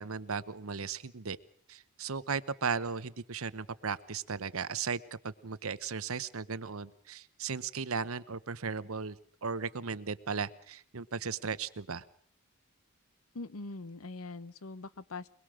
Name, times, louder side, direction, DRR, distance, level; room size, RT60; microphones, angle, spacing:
voice 1, 0.0-1.4 1.7-9.2 9.4-12.0, right 5 dB, 75° right, 15 dB, 0.9 m, -36 dB
voice 2, 13.3-15.3, left 3 dB, 75° left, 17 dB, 0.9 m, -42 dB
23.5 x 21.5 x 6.4 m, 0.62 s
head